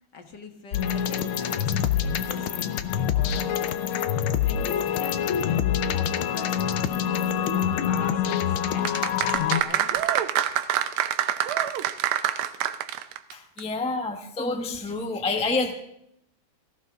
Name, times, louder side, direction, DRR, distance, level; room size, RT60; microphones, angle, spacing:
voice 1, 0.1-3.8 4.4-5.6 5.9-8.9 9.6-10.0, left 4 dB, 55° left, 5 dB, 2.0 m, -43 dB
sound 1, 0.7-9.6, left 9 dB, 90° left, 1.7 m, -25 dB
sound 2, 8.8-13.3 13.6-13.7, right 11 dB, 85° right, 1.6 m, -25 dB
voice 2, 13.3-15.7, left 3 dB, 5° left, 4 dB, 0.5 m, -28 dB
18.0 x 14.5 x 3.6 m, 0.76 s
omnidirectional pair, 2.3 m